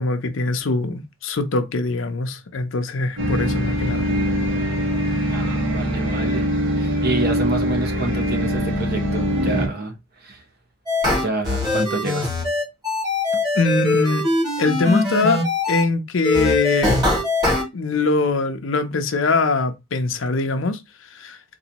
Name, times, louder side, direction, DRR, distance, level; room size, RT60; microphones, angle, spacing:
voice 1, 0.0-4.1 13.5-14.2 14.6-17.0 17.7-20.8 21.1-21.4, left 3 dB, 70° left, 0.6 m, -22 dB
sound 1, 3.2-9.7, equal, 70° right, 1.5 m, -22 dB
voice 2, 5.3-6.5 6.7-10.4 11.2-12.3, right 2 dB, 50° right, 0.9 m, -28 dB
sound 2, 10.9-15.8 16.2-17.6, left 2 dB, 20° right, 2.0 m, -22 dB
3.9 x 2.7 x 2.9 m
head